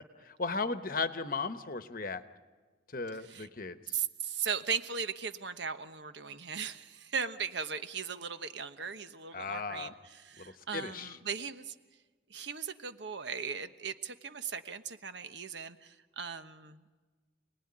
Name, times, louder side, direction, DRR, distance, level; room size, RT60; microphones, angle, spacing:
voice 1, 0.2-2.2 2.9-3.8 9.3-9.9 10.4-10.5 10.7-11.2, left 4 dB, 45° left, 10 dB, 1.1 m, -35 dB
voice 2, 3.2-3.5 3.9-11.7 12.3-16.8, right 6 dB, 65° right, 10 dB, 1.2 m, -38 dB
29.0 x 19.5 x 9.8 m, 1.4 s
head